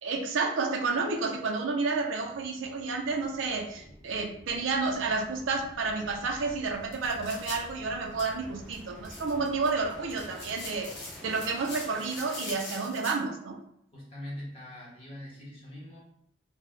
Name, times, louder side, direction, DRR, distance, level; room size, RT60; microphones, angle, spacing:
voice 1, 0.0-10.9 11.2-13.6, right 4 dB, 90° right, 2 dB, 0.5 m, -30 dB
sound 1, 1.5-12.9, equal, 5° left, 0.4 m, -49 dB
sound 2, 6.7-13.1, left 2 dB, 70° left, 1.0 m, -45 dB
voice 2, 13.9-16.0, left 1 dB, 30° left, -6 dB, 1.0 m, -42 dB
4.0 x 2.1 x 2.4 m, 0.72 s
head